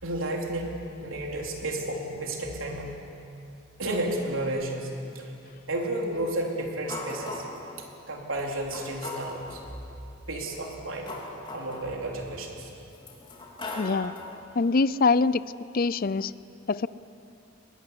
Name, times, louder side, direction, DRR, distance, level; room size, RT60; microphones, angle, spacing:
voice 1, 0.0-3.0 3.8-5.2 5.7-7.4 7.8-9.6 10.3-11.1 11.5-12.7, right 1 dB, 90° right, 0 dB, 4.0 m, -32 dB
sound 1, 6.9-7.7 8.4-8.5 8.7-9.7 10.5-12.4 12.9-14.4, left 2 dB, 25° left, 3.8 m, -39 dB
voice 2, 13.8-14.1 14.6-15.4 15.7-16.3 16.7-16.9, left 4 dB, 45° left, 18 dB, 0.5 m, -23 dB
22.5 x 20.0 x 9.9 m, 2.7 s
head